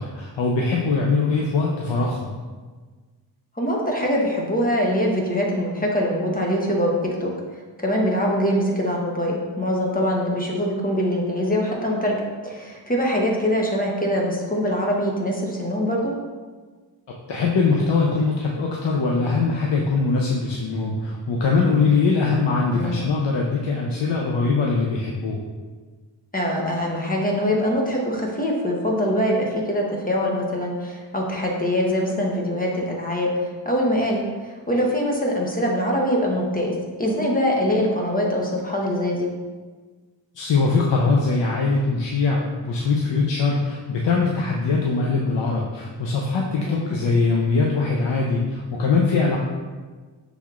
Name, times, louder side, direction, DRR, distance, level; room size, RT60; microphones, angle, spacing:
voice 1, 0.0-2.3 17.3-25.4 40.4-49.4, left 4 dB, 75° left, -2 dB, 0.6 m, -22 dB
voice 2, 3.6-6.9 7.2-7.3 7.8-12.2 12.4-16.1 22.7-23.0 26.3-39.3 46.7-46.9, equal, 20° left, -1 dB, 0.8 m, -23 dB
6.2 x 3.4 x 2.3 m, 1.4 s
wide cardioid pair, 85°, 44 cm